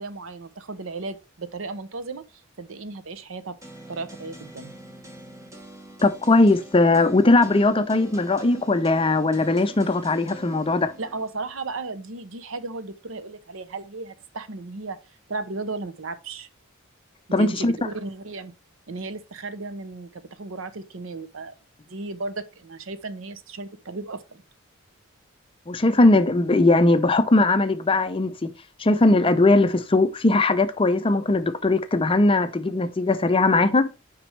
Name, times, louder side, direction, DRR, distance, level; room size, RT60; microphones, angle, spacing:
voice 1, 0.0-2.2 2.6-3.6 3.9-4.7 11.0-15.0 15.3-16.5 17.4-18.5 18.9-21.5 21.9-24.4, right 3 dB, 70° right, 0.7 m, -35 dB
sound 1, 3.6-11.2, equal, 15° right, 1.3 m, -45 dB
voice 2, 6.0-10.9 17.3-17.7 25.7-28.5 28.8-33.9, left 2 dB, 25° left, 0.5 m, -19 dB
6.1 x 5.2 x 3.2 m
head